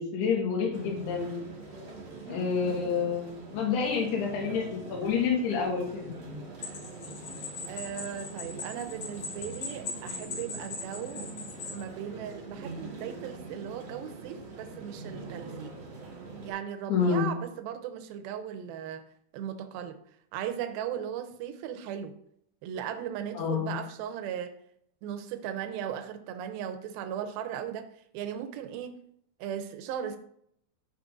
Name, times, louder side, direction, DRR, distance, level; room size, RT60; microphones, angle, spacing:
voice 1, 0.0-1.4 2.3-6.1 16.9-17.3 23.4-23.7, left 6 dB, 85° left, -1 dB, 3.5 m, -28 dB
sound 1, 0.7-16.5, right 3 dB, 50° right, 1.6 m, -43 dB
sound 2, 6.6-11.8, left 4 dB, 55° left, 2.7 m, -40 dB
voice 2, 7.7-11.3 11.7-15.7 16.4-19.0 19.3-19.9 20.3-22.1 22.6-24.5 25.0-27.9 28.1-29.0 29.4-30.2, right 9 dB, 80° right, 7 dB, 2.4 m, -37 dB
12.0 x 4.8 x 2.6 m, 0.69 s
omnidirectional pair, 4.6 m